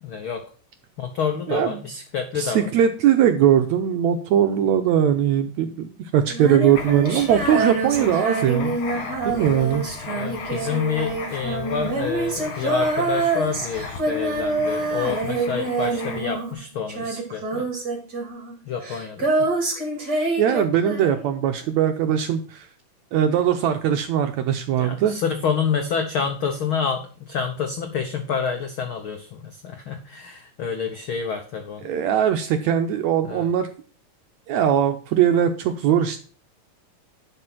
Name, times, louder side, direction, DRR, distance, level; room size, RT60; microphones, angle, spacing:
voice 1, 0.0-0.4 1.0-2.7 10.1-17.6 18.7-19.3 24.8-31.9 33.2-33.5, left 6 dB, 90° left, 4 dB, 1.1 m, -28 dB
voice 2, 1.5-1.8 2.4-8.7 9.3-9.8 20.4-22.7 23.1-25.1 31.8-33.7 34.5-36.2, right 9 dB, 75° right, 7 dB, 1.7 m, -20 dB
Female singing, 6.3-16.6 16.9-21.3, right 3 dB, 30° right, 2.8 m, -26 dB
Writing, 6.7-16.5, left 4 dB, 55° left, 2.7 m, -36 dB
11.0 x 5.2 x 5.9 m, 0.40 s
omnidirectional pair, 3.9 m